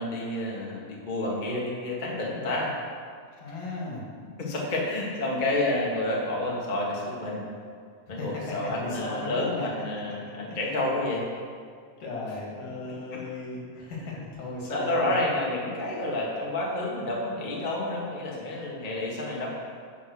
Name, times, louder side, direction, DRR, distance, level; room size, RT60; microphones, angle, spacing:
voice 1, 0.0-2.7 4.4-7.4 8.1-11.2 13.1-13.2 14.7-19.5, left 1 dB, 25° left, -4 dB, 0.9 m, -29 dB
voice 2, 3.4-4.0 8.1-9.7 10.5-10.7 12.0-15.1, left 2 dB, 75° left, -4 dB, 3.8 m, -36 dB
9.7 x 6.0 x 6.5 m, 2.1 s
omnidirectional pair, 3.8 m